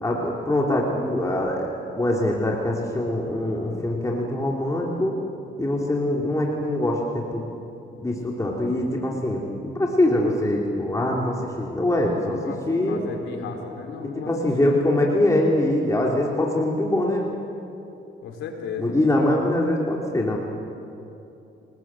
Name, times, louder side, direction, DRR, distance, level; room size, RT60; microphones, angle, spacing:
voice 1, 0.0-1.7 2.0-5.1 5.6-7.4 7.9-13.0 14.3-17.3 18.8-20.4, left 1 dB, 15° left, -2 dB, 3.3 m, -23 dB
voice 2, 12.2-14.8 18.2-19.0, left 5 dB, 85° left, 2 dB, 4.2 m, -35 dB
29.0 x 20.0 x 7.7 m, 2.8 s
cardioid pair, 90°, 20 cm